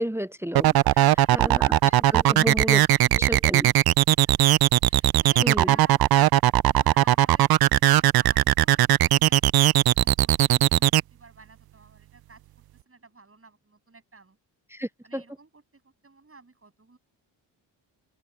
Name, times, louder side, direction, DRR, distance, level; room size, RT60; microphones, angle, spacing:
voice 1, 0.0-1.0 1.3-1.7 2.1-2.8 3.1-3.7 5.4-5.8 14.7-15.2, equal, 5° right, 0.6 m, -31 dB
sound 1, 0.5-11.0, right 14 dB, 55° right, 0.5 m, -18 dB
voice 2, 1.0-2.0 4.8-6.4 6.7-14.4 15.0-17.0, right 3 dB, 30° right, 8.0 m, -53 dB
open air
supercardioid pair, 65°, 46 cm